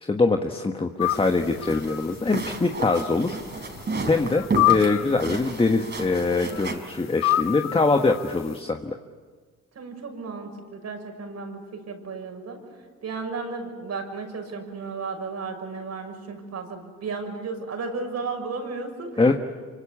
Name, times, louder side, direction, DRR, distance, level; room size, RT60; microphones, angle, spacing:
voice 1, 0.1-3.7 4.1-8.9 19.2-19.3, left 3 dB, 20° left, 5 dB, 1.4 m, -23 dB
sound 1, 1.0-1.4 1.6-2.3 2.9-3.2 3.8-3.9 4.3-5.2 6.5-6.6 7.2-8.4, left 14 dB, 60° left, 0.7 m, -26 dB
sound 2, 1.1-6.8, right 3 dB, 35° right, 4.4 m, -32 dB
voice 2, 9.7-12.6 13.0-19.2, right 4 dB, 60° right, 3 dB, 6.3 m, -34 dB
26.0 x 24.5 x 8.7 m, 1.5 s
cardioid pair, 90°, 30 cm